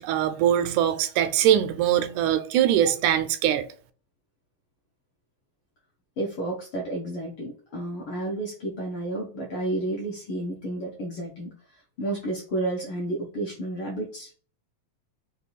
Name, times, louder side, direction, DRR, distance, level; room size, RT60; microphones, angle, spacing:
voice 1, 0.0-3.7, right 10 dB, 85° right, 2.0 m, -22 dB
voice 2, 6.2-11.5 12.0-14.3, right 1 dB, 70° left, 1.3 m, -31 dB
5.4 x 2.3 x 4.0 m
omnidirectional pair, 3.5 m